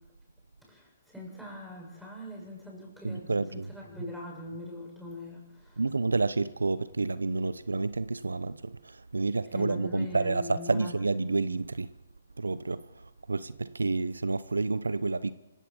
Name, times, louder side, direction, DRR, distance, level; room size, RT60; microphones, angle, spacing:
voice 1, 0.6-5.8 9.5-10.9, equal, ahead, 7.2 m, -42 dB
voice 2, 3.0-3.7 4.0-4.1 5.8-11.9 12.4-15.3, right 3 dB, 80° right, 0.8 m, -29 dB
26.0 x 16.0 x 7.2 m
figure-of-eight pair, 135°, 0 cm